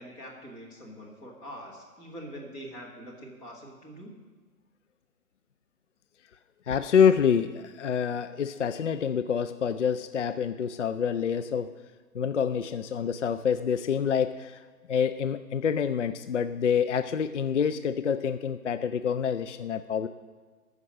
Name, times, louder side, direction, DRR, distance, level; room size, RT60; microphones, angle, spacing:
voice 1, 0.0-4.1, equal, 10° left, -3 dB, 1.3 m, -44 dB
voice 2, 6.7-11.7 12.1-14.6 14.9-20.1, left 7 dB, 55° left, 11 dB, 0.5 m, -27 dB
13.0 x 6.7 x 7.5 m, 1.4 s
figure-of-eight pair, 145°, 46 cm